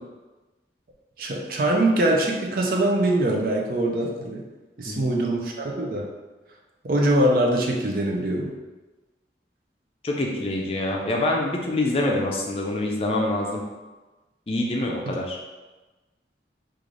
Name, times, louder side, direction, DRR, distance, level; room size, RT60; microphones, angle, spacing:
voice 1, 1.2-4.4 4.8-6.1 6.8-8.5, right 1 dB, 50° right, 0 dB, 0.5 m, -23 dB
voice 2, 10.0-13.6 14.5-15.4, left 2 dB, 30° left, 0 dB, 0.4 m, -25 dB
3.1 x 2.5 x 3.8 m, 1.2 s
head